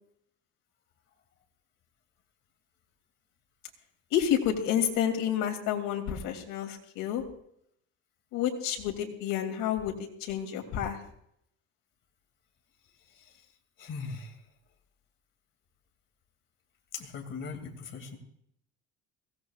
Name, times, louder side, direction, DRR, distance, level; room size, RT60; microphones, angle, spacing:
voice 1, 4.1-7.2 8.3-9.9 10.2-11.0, left 9 dB, 75° left, 2 dB, 2.9 m, -29 dB
voice 2, 13.8-14.3 16.9-18.2, left 5 dB, 35° left, 2 dB, 2.5 m, -39 dB
23.0 x 17.0 x 2.4 m, 0.71 s
cardioid pair, 165°, 33 cm